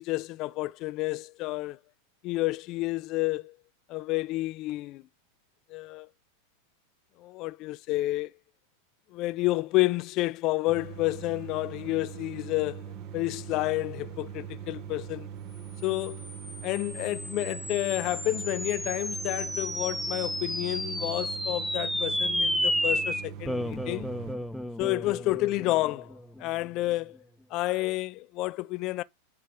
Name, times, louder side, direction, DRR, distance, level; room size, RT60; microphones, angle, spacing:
voice 1, 0.0-1.8 2.2-3.5 3.9-5.0 5.7-6.1 7.2-8.3 9.1-12.8 13.1-15.3 15.8-16.3 16.6-24.1 24.8-27.2 27.5-29.0, left 19 dB, 50° left, 0.4 m, -30 dB
sound 1, 10.7-24.4, right 8 dB, 50° right, 1.0 m, -42 dB
sound 2, 16.0-26.6, left 1 dB, ahead, 0.7 m, -32 dB
8.2 x 3.3 x 4.9 m
hypercardioid pair, 100°, 0 cm